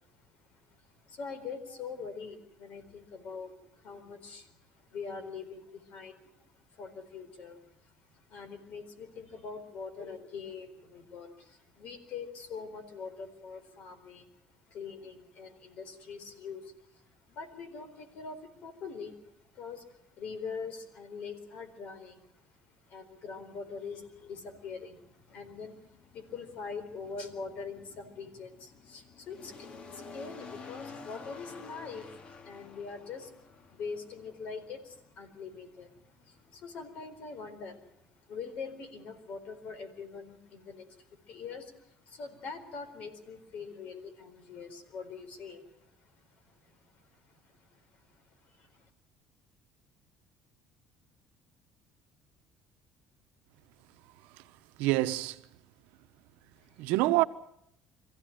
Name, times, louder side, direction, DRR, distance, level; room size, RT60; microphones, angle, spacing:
voice 1, 0.0-32.1 32.4-48.9 56.7-56.9, left 5 dB, 60° left, 4.3 m, -44 dB
sound 1, 24.0-38.5, left 4 dB, 45° left, 2.1 m, -52 dB
voice 2, 54.1-55.5 56.8-57.2, right 18 dB, 85° right, 1.1 m, -28 dB
24.0 x 15.5 x 9.1 m
cardioid pair, 110°, 3 cm